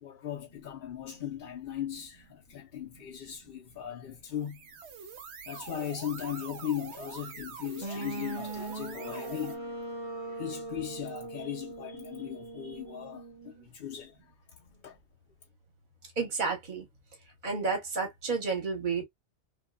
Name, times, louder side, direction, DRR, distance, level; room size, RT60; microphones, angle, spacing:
voice 1, 0.0-4.6 5.5-15.0, left 10 dB, 60° left, 0.7 m, -38 dB
sound 1, 4.3-9.6, right 6 dB, 70° right, 1.0 m, -45 dB
sound 2, 7.8-13.7, right 2 dB, 25° right, 0.9 m, -40 dB
voice 2, 16.2-16.9 17.4-19.0, right 4 dB, 45° right, 1.3 m, -31 dB
2.9 x 2.7 x 2.3 m
omnidirectional pair, 1.2 m